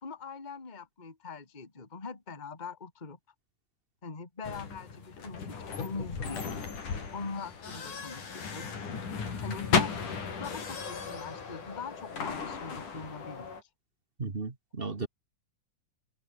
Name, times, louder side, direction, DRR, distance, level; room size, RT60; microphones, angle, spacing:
voice 1, 0.0-3.2 4.0-6.4 7.1-8.7 9.4-9.9 10.4-13.5, left 4 dB, 15° left, 2.3 m, -42 dB
sound 1, 4.4-13.6, left 5 dB, 75° left, 5.9 m, -35 dB
voice 2, 14.2-15.1, right 4 dB, 30° right, 1.1 m, -35 dB
omnidirectional pair, 3.7 m